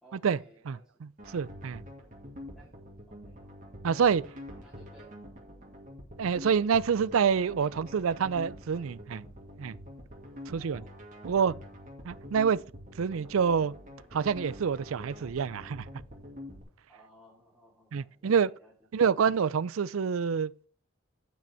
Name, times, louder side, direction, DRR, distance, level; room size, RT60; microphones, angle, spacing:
voice 1, 0.0-1.0 2.1-2.3 2.5-2.7 3.1-3.7 4.5-5.2 10.3-11.4 16.9-18.9, equal, 5° left, 2.5 m, -59 dB
voice 2, 0.7-1.8 3.8-4.2 6.2-9.2 9.6-9.7 10.5-10.8 11.2-11.5 12.0-12.6 13.0-13.7 14.1-15.9 17.9-18.5 18.9-20.7, right 6 dB, 80° right, 0.4 m, -27 dB
sound 1, 1.2-16.6, left 1 dB, 40° right, 2.4 m, -46 dB
9.4 x 6.1 x 4.4 m
head